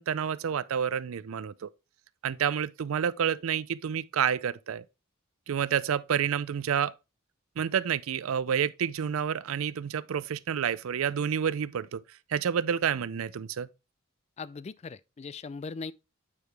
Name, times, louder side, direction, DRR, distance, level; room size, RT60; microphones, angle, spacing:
voice 1, 0.0-1.7 2.2-4.8 5.5-6.9 7.6-12.0 12.3-13.7, right 8 dB, 80° right, 0.4 m, -29 dB
voice 2, 14.4-15.9, left 4 dB, 30° left, 0.3 m, -39 dB
8.4 x 4.7 x 3.3 m
head